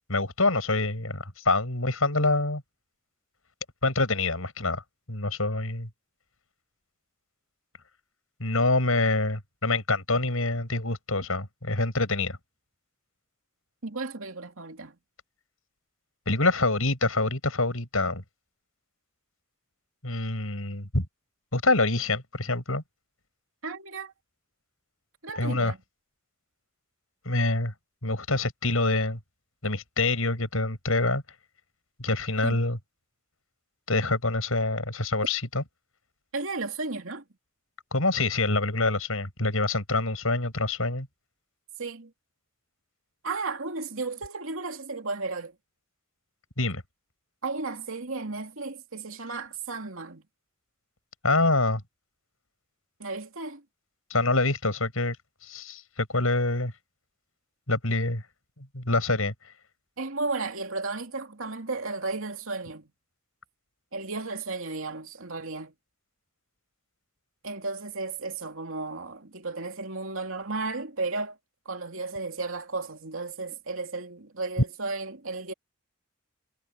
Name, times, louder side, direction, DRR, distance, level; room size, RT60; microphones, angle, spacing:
voice 1, 0.1-2.6 3.8-4.8 5.1-5.9 8.4-12.4 16.3-18.2 20.0-21.1 21.5-22.8 25.4-25.7 27.3-27.7 28.0-29.2 29.6-31.2 32.0-32.8 33.9-35.6 37.9-41.1 46.6-46.8 51.2-51.8 54.1-55.2 55.4-56.7 57.7-58.2 58.7-59.3, left 2 dB, 75° left, 7.0 m, -26 dB
voice 2, 13.8-15.0 23.6-24.1 25.2-25.8 32.4-32.6 36.3-37.2 41.8-42.1 43.2-45.5 47.4-50.2 53.0-53.6 60.0-62.8 63.9-65.7 67.4-71.4 71.7-75.5, right 3 dB, 75° right, 2.7 m, -34 dB
head